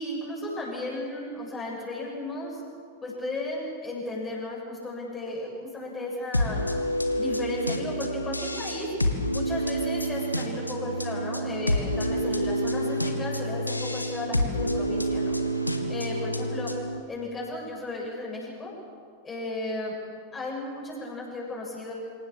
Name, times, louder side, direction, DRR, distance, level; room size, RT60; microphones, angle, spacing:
voice 1, 0.0-2.6 3.0-6.6 7.2-8.9 9.3-15.4 15.9-16.7 17.1-18.7 19.2-20.0 20.3-21.9, left 2 dB, 20° left, -4 dB, 7.6 m, -34 dB
sound 1, 6.3-17.0, equal, 85° left, 1.6 m, -28 dB
26.5 x 17.5 x 7.4 m, 2.2 s
figure-of-eight pair, 90°, 0 cm